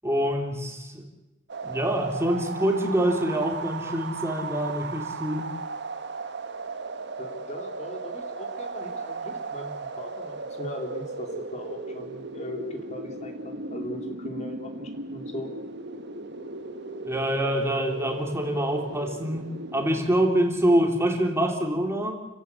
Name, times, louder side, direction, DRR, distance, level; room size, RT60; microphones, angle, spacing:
voice 1, 0.0-1.0 1.6-5.5 17.0-22.2, equal, 15° right, 2 dB, 3.2 m, -25 dB
sound 1, 1.5-20.0, right 3 dB, 60° right, 1.6 m, -36 dB
voice 2, 7.2-15.5, left 1 dB, 35° left, 3 dB, 3.0 m, -39 dB
29.5 x 16.5 x 8.3 m, 1.0 s
head